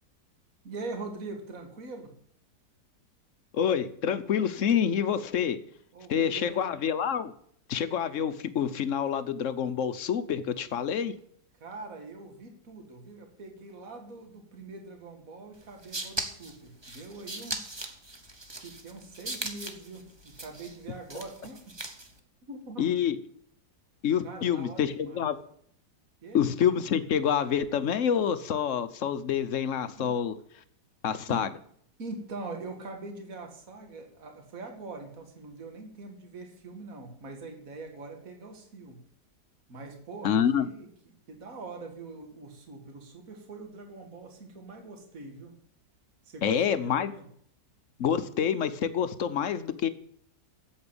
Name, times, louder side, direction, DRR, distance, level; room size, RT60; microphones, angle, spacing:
voice 1, 0.6-2.1 5.9-6.8 11.6-17.8 18.6-21.7 22.5-22.9 24.2-25.2 26.2-26.4 30.0-30.1 31.3-31.4 32.0-39.0 39.7-40.9 41.3-45.6 46.3-47.2, right 3 dB, 50° right, 4 dB, 2.4 m, -43 dB
voice 2, 3.5-5.6 6.1-7.3 7.7-11.1 22.8-23.2 24.0-25.4 26.3-30.3 31.0-31.5 40.2-40.7 46.4-47.1 48.0-49.9, left 8 dB, 55° left, 13 dB, 1.0 m, -27 dB
sound 1, 15.6-22.2, right 2 dB, 15° right, 1.1 m, -39 dB
8.6 x 7.9 x 8.7 m, 0.64 s
omnidirectional pair, 1.9 m